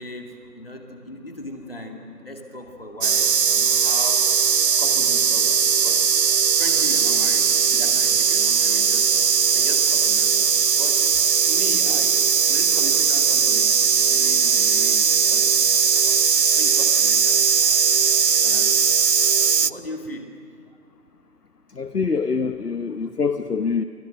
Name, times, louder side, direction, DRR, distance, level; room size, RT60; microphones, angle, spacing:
voice 1, 0.0-4.3 4.8-6.1 6.6-9.1 9.5-11.1 11.5-17.8 18.3-18.8 19.6-20.4, left 1 dB, 35° left, 3 dB, 2.4 m, -38 dB
sound 1, 3.0-19.7, right 7 dB, 80° right, 0.8 m, -19 dB
voice 2, 21.8-23.8, left 5 dB, 70° left, 9 dB, 1.0 m, -24 dB
29.5 x 25.0 x 6.5 m, 2.1 s
figure-of-eight pair, 180°, 49 cm